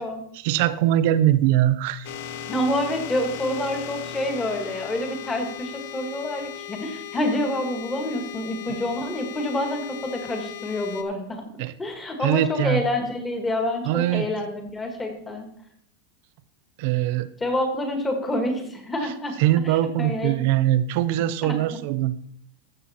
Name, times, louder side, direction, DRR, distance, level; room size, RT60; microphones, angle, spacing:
voice 1, 0.3-2.1 11.6-11.7 12.2-12.8 13.8-14.3 16.8-17.3 19.0-19.1 19.4-22.1, right 13 dB, 50° right, 14 dB, 0.7 m, -22 dB
sound 1, 2.0-11.0, left 10 dB, 55° left, 1.0 m, -37 dB
voice 2, 2.5-11.4 11.8-15.5 17.4-19.3 20.0-20.3 21.4-21.6, left 1 dB, 10° left, 4 dB, 1.6 m, -27 dB
13.5 x 7.5 x 4.2 m, 0.66 s
supercardioid pair, 175°, 0 cm